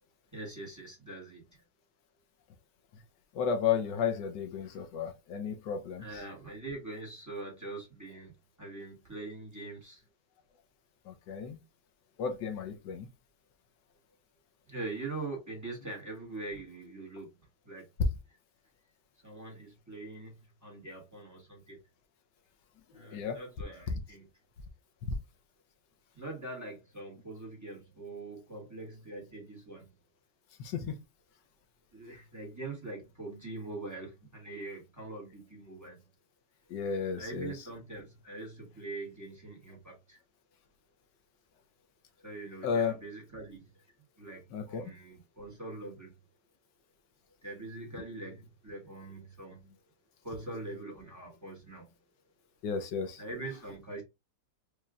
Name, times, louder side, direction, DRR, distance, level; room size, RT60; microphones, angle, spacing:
voice 1, 0.3-1.6 6.0-8.3 8.6-10.0 14.7-17.3 17.6-17.8 19.2-20.3 20.6-21.8 22.9-24.3 26.1-29.8 31.9-36.0 37.2-40.2 42.2-43.6 44.2-46.1 47.4-49.6 50.2-51.9 53.2-54.0, right 2 dB, 10° right, 1.4 m, -43 dB
voice 2, 3.3-6.0 11.1-11.6 12.2-13.1 23.1-23.4 30.6-30.9 36.7-37.5 42.6-42.9 44.5-44.8 52.6-53.2, left 7 dB, 85° left, 1.4 m, -33 dB
4.8 x 2.9 x 2.3 m
omnidirectional pair, 1.8 m